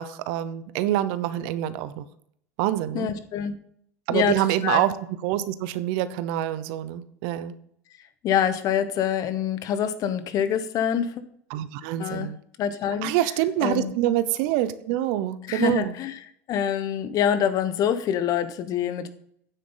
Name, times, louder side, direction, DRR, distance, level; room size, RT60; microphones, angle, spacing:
voice 1, 0.0-2.0 2.6-3.1 4.1-4.9 5.2-7.5 11.5-12.4 13.0-15.9, right 13 dB, 60° right, 14 dB, 0.8 m, -26 dB
voice 2, 2.9-3.6 4.1-4.4 4.6-4.8 8.2-11.1 12.0-12.3 12.6-13.1 13.6-13.9 15.5-16.2 16.5-19.1, left 8 dB, 45° left, 12 dB, 1.1 m, -25 dB
9.3 x 7.8 x 3.9 m, 0.67 s
hypercardioid pair, 90°, 8 cm